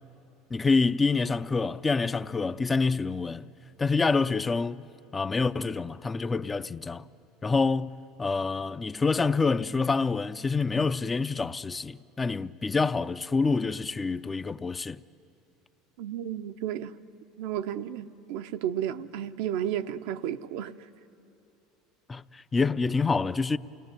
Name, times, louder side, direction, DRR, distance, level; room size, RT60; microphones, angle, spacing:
voice 1, 0.5-3.4 3.8-4.9 5.1-7.0 7.4-7.9 8.2-15.0 22.1-23.6, left 4 dB, 20° left, 0.6 m, -27 dB
voice 2, 16.0-16.9 17.4-20.7, right 10 dB, 75° right, 0.8 m, -32 dB
29.0 x 19.0 x 9.3 m
supercardioid pair, 100°, 0 cm